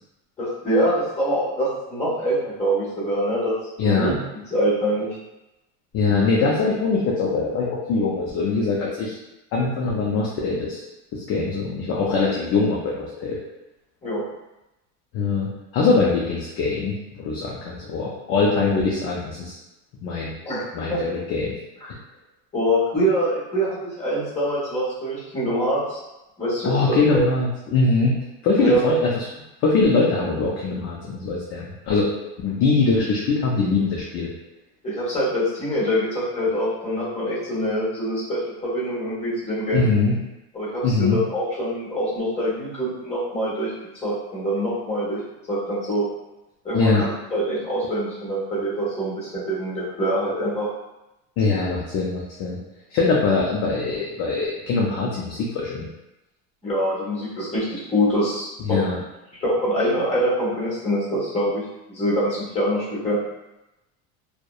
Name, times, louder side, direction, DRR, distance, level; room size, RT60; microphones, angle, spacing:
voice 1, 0.4-3.6 3.8-4.2 4.5-5.1 14.0-14.2 20.4-20.6 20.9-21.0 21.8-21.9 22.5-26.0 26.4-27.2 28.6-29.0 34.8-39.9 40.5-43.7 44.0-45.2 45.5-46.1 46.6-50.7 56.6-58.8 59.4-63.2, equal, 20° left, -8 dB, 1.2 m, -24 dB
voice 2, 3.8-4.2 5.9-9.2 9.5-10.8 11.1-13.4 15.1-19.6 20.0-20.3 20.7-21.5 26.6-29.3 29.6-32.1 32.4-34.3 39.7-40.2 40.8-41.2 46.7-47.0 51.4-52.6 52.9-55.9 58.7-59.0, left 4 dB, 40° left, -4 dB, 0.4 m, -22 dB
2.6 x 2.1 x 2.3 m, 0.96 s
supercardioid pair, 130°, 36 cm